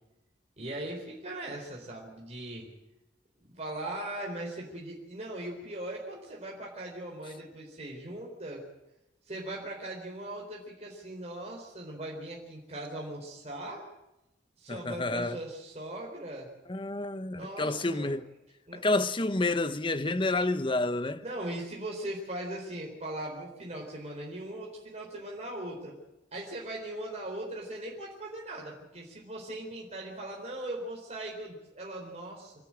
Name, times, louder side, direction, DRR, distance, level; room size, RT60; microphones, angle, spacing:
voice 1, 0.6-2.7 3.4-8.6 9.3-13.9 14.6-16.5 17.4-18.2 18.7-18.8 21.2-26.0 26.3-32.5, right 1 dB, 35° right, 4.1 m, -39 dB
voice 2, 14.7-15.4 16.7-18.3 18.7-21.2, left 2 dB, 30° left, 0.9 m, -29 dB
27.0 x 13.0 x 8.8 m
head